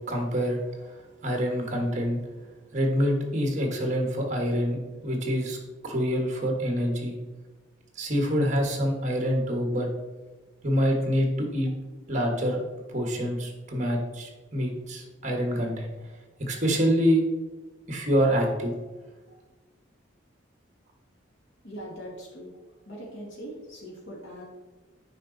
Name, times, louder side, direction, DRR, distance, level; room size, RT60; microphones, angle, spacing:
voice 1, 0.1-0.9 1.2-2.2 2.7-5.6 5.8-7.2 7.9-9.9 10.6-11.7 12.1-12.6 12.9-15.9 16.4-17.2 17.9-18.7, equal, 40° right, 2 dB, 1.5 m, -26 dB
voice 2, 21.6-22.6 22.9-24.4, equal, 75° left, -3 dB, 1.9 m, -41 dB
8.9 x 5.1 x 4.0 m, 1.2 s
head